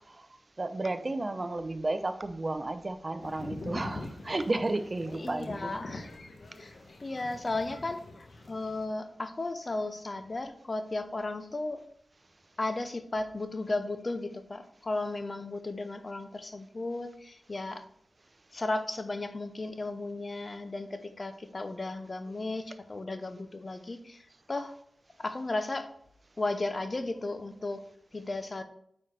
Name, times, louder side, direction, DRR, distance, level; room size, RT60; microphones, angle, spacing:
voice 1, 0.6-5.7, right 2 dB, 35° right, 10 dB, 0.6 m, -32 dB
sound 1, 3.2-8.9, left 2 dB, 65° left, 1.1 m, -44 dB
voice 2, 5.1-6.1 6.6-6.7 7.0-11.8 12.6-17.8 18.5-24.2 24.5-24.7 25.2-25.9 26.4-27.8 28.1-28.6, left 2 dB, 40° left, 9 dB, 0.7 m, -35 dB
9.2 x 4.2 x 3.3 m, 0.69 s
cardioid pair, 65°, 0 cm